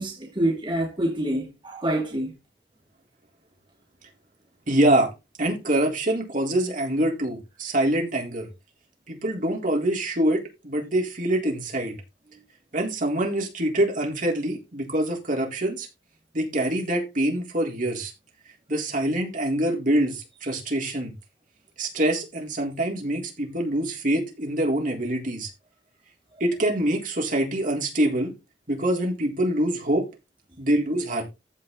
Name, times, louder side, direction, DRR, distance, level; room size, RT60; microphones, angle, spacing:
voice 1, 0.0-2.3 26.3-26.4, right 1 dB, 30° right, 2.6 m, -27 dB
voice 2, 4.7-5.1 5.4-8.5 9.1-12.0 12.7-15.9 16.3-18.1 18.7-21.1 21.8-25.5 26.4-28.3 28.7-30.0 30.6-31.2, right 1 dB, 50° right, 3.8 m, -25 dB
15.0 x 5.4 x 4.0 m
head